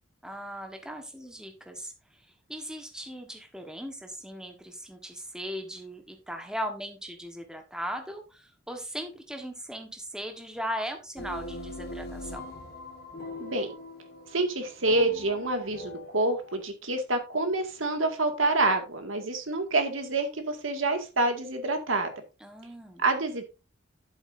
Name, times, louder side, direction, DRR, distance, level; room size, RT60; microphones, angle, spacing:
voice 1, 0.2-1.9 2.5-12.4 22.4-23.0, equal, 5° right, 4 dB, 1.4 m, -38 dB
sound 1, 11.2-16.6, left 2 dB, 55° left, 1.7 m, -42 dB
voice 2, 13.4-13.7 14.3-22.1 23.0-23.4, right 2 dB, 85° right, 5 dB, 2.1 m, -27 dB
11.0 x 8.2 x 2.7 m, 0.29 s
head